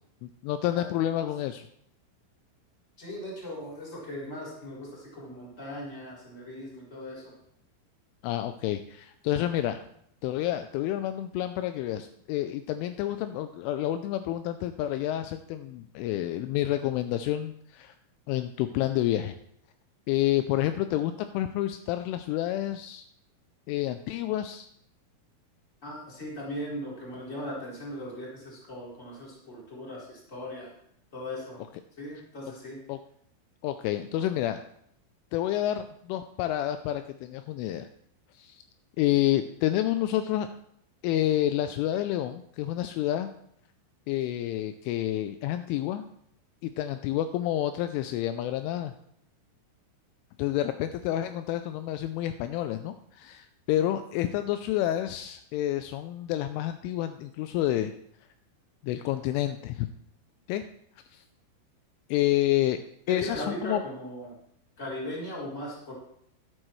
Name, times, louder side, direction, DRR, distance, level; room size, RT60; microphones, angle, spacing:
voice 1, 0.2-1.7 8.2-9.8 10.2-17.9 18.3-19.3 20.1-23.0 23.7-24.7 32.9-33.0 33.6-34.6 35.3-37.9 38.4-38.6 39.0-40.5 41.0-43.3 44.1-46.1 46.6-48.9 50.4-57.9 58.8-59.9 60.5-60.6 61.1-61.2 62.1-62.8 63.1-63.8, left 13 dB, 85° left, 9 dB, 3.0 m, -29 dB
voice 2, 3.0-7.2 25.8-30.7 31.1-31.6 32.0-32.8 63.1-64.3 64.8-65.9, equal, 15° left, -5 dB, 3.6 m, -38 dB
14.0 x 11.0 x 3.2 m, 0.71 s
omnidirectional pair, 5.7 m